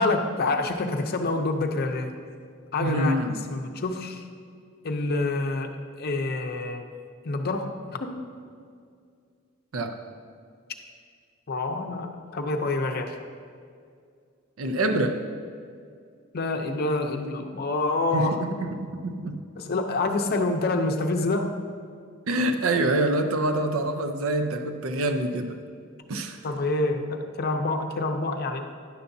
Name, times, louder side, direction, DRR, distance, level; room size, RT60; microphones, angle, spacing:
voice 1, 0.0-2.1 2.7-3.1 3.5-4.2 4.8-5.7 6.0-6.9 7.2-8.2 11.5-13.2 16.3-18.4 19.6-21.5 26.4-28.7, left 2 dB, 50° left, 5 dB, 0.6 m, -27 dB
voice 2, 2.8-3.5 9.7-10.0 14.6-15.2 18.1-19.4 22.3-25.6 26.1-26.4, right 1 dB, 85° right, 7 dB, 0.6 m, -26 dB
10.0 x 6.9 x 2.6 m, 2.2 s
head